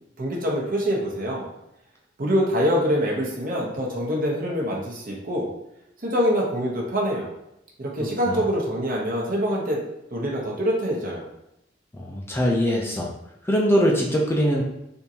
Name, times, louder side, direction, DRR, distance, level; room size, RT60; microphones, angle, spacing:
voice 1, 0.2-1.5 2.2-5.5 6.0-7.3 7.8-9.8 10.1-11.3, equal, 50° right, -2 dB, 0.8 m, -25 dB
voice 2, 12.0-13.1 13.5-14.6, equal, 15° left, -2 dB, 0.4 m, -22 dB
3.5 x 2.6 x 2.8 m, 0.82 s
head